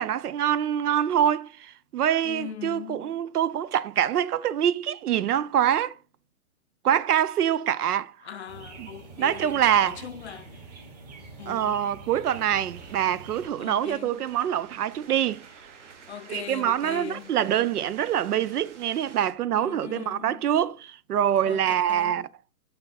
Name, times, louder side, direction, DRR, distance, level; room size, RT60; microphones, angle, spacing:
voice 1, 0.0-6.0 6.8-8.1 8.8-8.9 9.2-10.0 11.5-15.5 16.3-22.3, right 10 dB, 85° right, 0.7 m, -25 dB
voice 2, 2.2-3.2 8.2-10.6 11.4-11.8 13.6-14.2 16.1-17.3 19.6-20.5 21.5-22.3, left 8 dB, 50° left, 0.5 m, -41 dB
sound 1, 8.5-13.5, right 3 dB, 25° right, 1.4 m, -45 dB
sound 2, 12.3-19.3, right 5 dB, 55° right, 1.5 m, -50 dB
6.8 x 5.4 x 4.1 m
hypercardioid pair, 170°, 44 cm